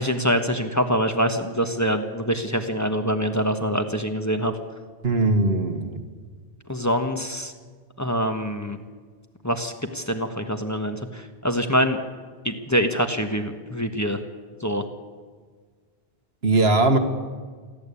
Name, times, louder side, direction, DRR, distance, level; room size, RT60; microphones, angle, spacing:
voice 1, 0.0-4.5 6.7-7.5 8.0-8.8 9.4-12.0 12.4-14.2 14.6-14.8, equal, 15° left, 5 dB, 1.3 m, -25 dB
voice 2, 5.0-6.0 16.4-17.0, right 2 dB, 80° right, 6 dB, 1.9 m, -20 dB
27.0 x 11.5 x 8.5 m, 1.5 s
omnidirectional pair, 1.0 m